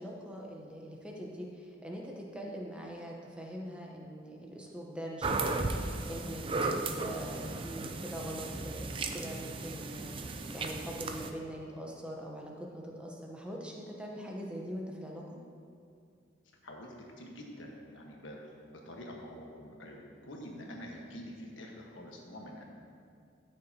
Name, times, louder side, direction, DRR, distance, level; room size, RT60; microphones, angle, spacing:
voice 1, 0.0-15.4, equal, 5° right, -1 dB, 0.9 m, -43 dB
sound 1, 5.2-11.3, right 3 dB, 25° right, 0.4 m, -35 dB
voice 2, 16.6-22.7, equal, 75° left, 0 dB, 1.3 m, -46 dB
13.5 x 6.7 x 2.8 m, 2.4 s
head